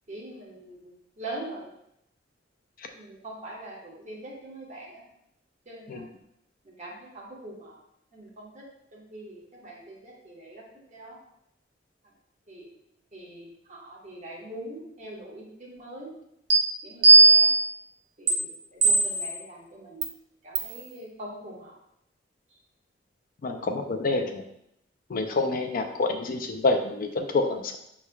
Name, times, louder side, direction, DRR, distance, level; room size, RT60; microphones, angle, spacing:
voice 1, 0.1-1.7 2.9-5.0 5.6-6.1 6.6-7.8 8.1-10.6 10.9-11.2 12.5-12.7 13.1-16.1 16.8-17.5 18.2-20.1 20.4-21.7, right 1 dB, 40° right, -4 dB, 1.2 m, -42 dB
sound 1, 16.5-16.6 17.0-17.6 18.3-18.4 18.8-19.3 20.0-20.1 20.6-20.8, right 4 dB, 75° right, 0.7 m, -17 dB
voice 2, 23.4-24.4 25.1-27.8, left 3 dB, 50° left, 5 dB, 0.4 m, -27 dB
5.5 x 3.1 x 2.3 m, 0.77 s
head